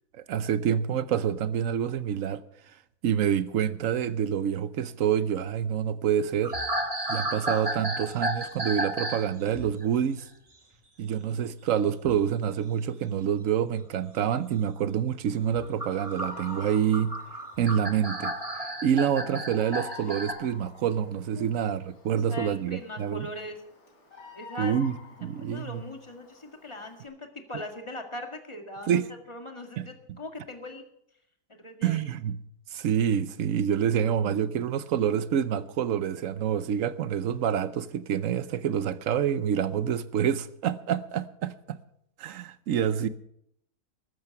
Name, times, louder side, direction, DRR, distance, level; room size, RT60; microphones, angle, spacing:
voice 1, 0.2-2.4 3.0-6.6 7.1-10.3 11.0-17.2 17.6-18.3 18.8-23.3 24.6-24.9 25.2-25.8 28.9-29.1 29.8-29.9 31.8-32.4 32.7-41.8 42.2-43.1, right 8 dB, 65° right, 1.1 m, -27 dB
sound 1, 6.4-9.3 9.5-9.8 12.0-12.3 13.6-13.7 15.6-20.3, right 1 dB, 25° right, 1.8 m, -32 dB
Bird vocalization bird call bird song, 15.2-27.1, left 4 dB, 70° left, 3.6 m, -50 dB
voice 2, 22.1-23.6 24.3-24.8 25.2-29.0 29.3-30.9 31.5-32.1, left 1 dB, 20° left, 1.8 m, -40 dB
14.5 x 12.5 x 5.9 m
omnidirectional pair, 1.6 m